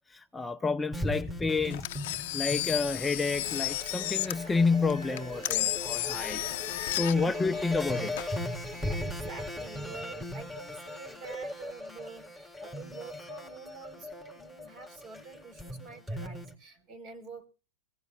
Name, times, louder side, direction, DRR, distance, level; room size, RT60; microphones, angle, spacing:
voice 1, 0.1-1.8 2.3-6.5 6.9-8.1, left 4 dB, 10° left, 0.6 m, -29 dB
sound 1, 0.9-16.5, left 1 dB, 10° right, 3.7 m, -39 dB
Engine, 1.7-9.0, left 16 dB, 60° left, 0.6 m, -34 dB
sound 2, 3.3-7.4, right 1 dB, 80° right, 2.6 m, -51 dB
voice 2, 7.0-7.3 8.8-17.5, right 4 dB, 40° right, 4.1 m, -47 dB
22.0 x 16.5 x 2.3 m
hypercardioid pair, 115°, 0 cm